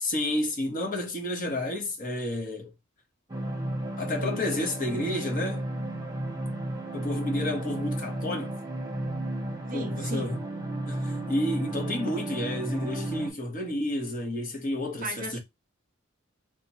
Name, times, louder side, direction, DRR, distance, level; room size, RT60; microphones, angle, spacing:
voice 1, 0.0-2.7 4.0-5.7 6.9-8.6 9.7-10.4 10.9-15.4, left 1 dB, 40° left, 1.0 m, -31 dB
sound 1, 3.3-13.3, right 1 dB, 20° right, 1.0 m, -33 dB
voice 2, 9.7-10.4 15.0-15.4, right 4 dB, 40° right, 0.5 m, -36 dB
3.5 x 2.9 x 2.9 m
head